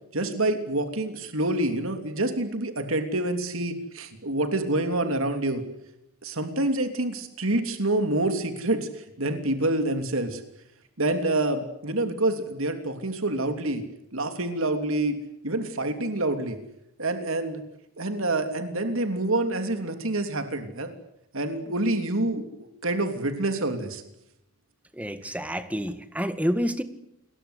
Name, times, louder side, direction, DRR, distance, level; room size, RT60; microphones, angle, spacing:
voice 1, 0.1-5.6 6.2-10.4 11.0-13.8 14.1-15.1 15.4-16.6 17.0-17.6 18.0-20.9 21.3-24.0, right 2 dB, 65° right, 7 dB, 3.2 m, -27 dB
voice 2, 24.9-26.8, equal, 5° right, 10 dB, 1.7 m, -28 dB
29.5 x 22.5 x 8.3 m, 0.83 s
head